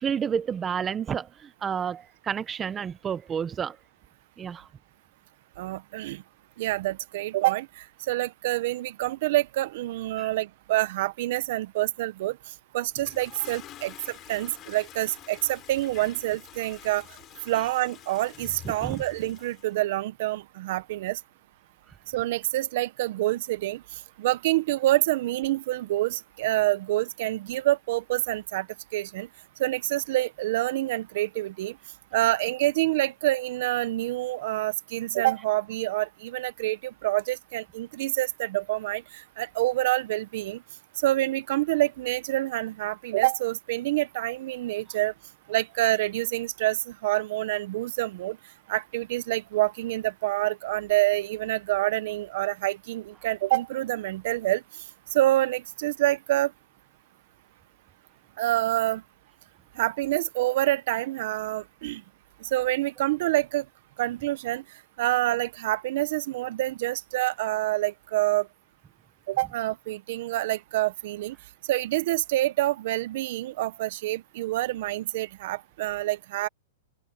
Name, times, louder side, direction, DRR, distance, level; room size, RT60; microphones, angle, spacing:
voice 1, 0.0-3.8 4.4-4.7 10.2-10.3 18.6-19.0, right 7 dB, 15° right, 0.8 m, -30 dB
voice 2, 5.6-6.2 6.6-7.7 8.1-12.4 12.7-17.0 17.5-21.2 22.1-23.8 24.2-28.7 28.9-29.3 29.6-31.7 32.1-39.0 39.4-40.6 41.0-45.1 45.5-48.4 48.7-54.6 55.1-56.5 58.4-59.0 59.8-62.0 62.4-63.6 64.0-64.6 65.0-68.5 69.3-71.3 71.7-76.5, right 16 dB, 50° right, 0.8 m, -27 dB
Toilet flush, 12.9-19.7, left 13 dB, 25° left, 4.7 m, -47 dB
open air
supercardioid pair, 160°, 0 cm